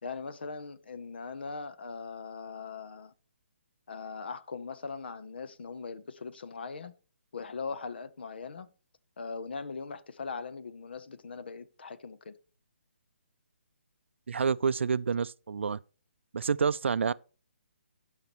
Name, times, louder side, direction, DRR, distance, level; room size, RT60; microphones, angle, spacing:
voice 1, 0.0-3.1 3.9-6.9 7.3-8.7 9.2-12.4, left 4 dB, 55° left, 0.8 m, -40 dB
voice 2, 14.3-15.8 16.3-17.1, right 6 dB, 80° right, 0.4 m, -28 dB
15.5 x 5.8 x 3.0 m
hypercardioid pair, 175°, 6 cm